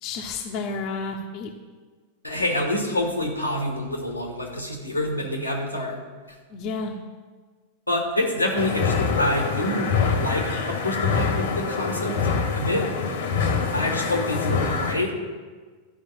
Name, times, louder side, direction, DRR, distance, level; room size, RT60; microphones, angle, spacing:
voice 1, 0.0-1.5 6.5-7.0 12.7-12.9, left 4 dB, 40° left, 2 dB, 1.1 m, -31 dB
voice 2, 2.2-6.0 7.9-9.9 10.1-12.2 12.5-12.9 13.7-15.1, left 1 dB, 90° left, 1 dB, 2.3 m, -26 dB
sound 1, 8.5-14.9, left 5 dB, 60° left, 1.6 m, -25 dB
12.5 x 5.4 x 8.7 m, 1.4 s
figure-of-eight pair, 90°, 0 cm